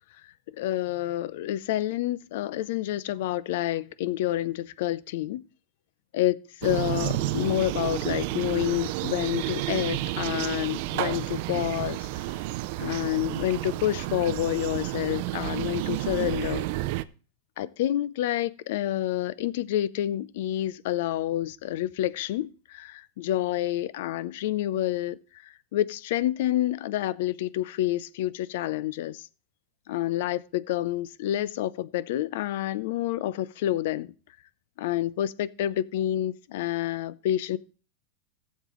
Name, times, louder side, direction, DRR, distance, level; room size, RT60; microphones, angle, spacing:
voice 1, 0.6-5.4 6.1-12.2 12.8-16.6 17.6-29.3 29.9-34.1 34.8-37.6, left 13 dB, 60° left, 0.5 m, -28 dB
sound 1, 6.6-17.0, right 16 dB, 50° right, 0.5 m, -31 dB
17.0 x 7.3 x 3.1 m
supercardioid pair, 165°, 0 cm